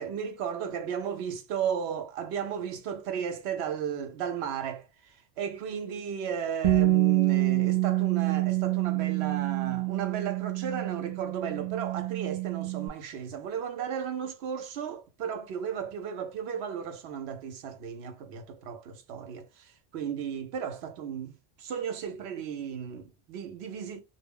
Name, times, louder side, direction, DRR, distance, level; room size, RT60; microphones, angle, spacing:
voice 1, 0.0-24.0, right 8 dB, 70° right, 0.8 m, -35 dB
Bass guitar, 6.6-12.9, right 17 dB, 50° right, 0.4 m, -27 dB
2.3 x 2.0 x 3.4 m
omnidirectional pair, 1.1 m